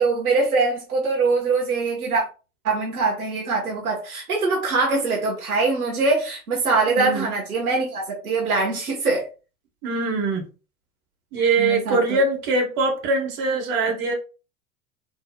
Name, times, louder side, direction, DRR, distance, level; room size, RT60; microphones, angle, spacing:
voice 1, 0.0-2.2 2.6-9.3 11.6-12.2, right 3 dB, 80° right, 1.4 m, -23 dB
voice 2, 6.9-7.3 9.8-10.5 11.3-14.1, right 3 dB, 50° right, 1.8 m, -22 dB
4.3 x 3.6 x 2.3 m
hypercardioid pair, 90°, 43 cm